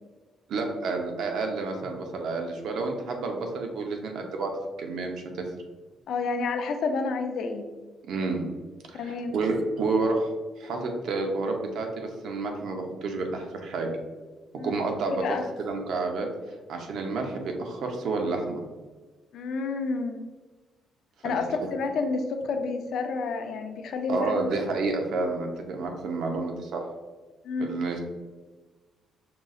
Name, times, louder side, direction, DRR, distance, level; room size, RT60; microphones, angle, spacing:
voice 1, 0.5-5.2 8.1-8.4 8.9-10.3 10.6-13.9 14.6-15.2 15.6-16.3 16.7-18.6 21.2-21.4 24.1-26.8 27.6-28.0, right 3 dB, 65° right, 3 dB, 0.8 m, -30 dB
voice 2, 6.1-7.7 8.9-9.5 14.6-14.8 15.0-15.4 19.3-20.2 21.2-24.5 27.4-27.7, left 4 dB, 60° left, 5 dB, 0.5 m, -29 dB
5.8 x 2.4 x 3.7 m, 1.3 s
cardioid pair, 170°, 0 cm